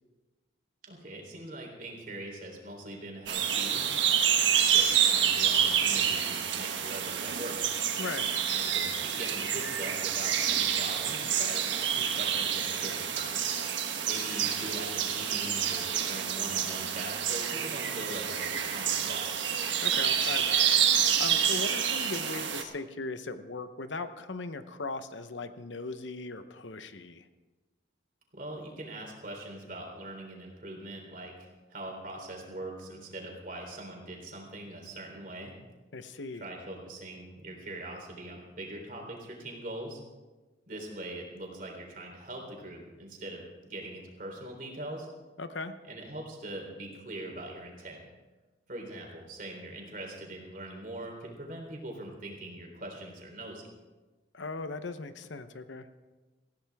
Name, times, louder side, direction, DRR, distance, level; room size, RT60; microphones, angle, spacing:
voice 1, 0.8-3.9 4.6-7.7 8.5-13.5 14.0-19.3 28.3-35.5 36.3-40.0 40.7-45.1 45.9-48.0 48.7-53.6, right 1 dB, 45° right, 1 dB, 3.5 m, -42 dB
sound 1, 3.3-22.6, right 8 dB, 80° right, 1.4 m, -28 dB
voice 2, 8.0-8.3 19.8-20.7 21.2-27.2 35.9-36.4 45.4-45.7 54.3-55.9, left 3 dB, 80° left, 10 dB, 0.9 m, -38 dB
19.5 x 15.5 x 3.5 m, 1.2 s
head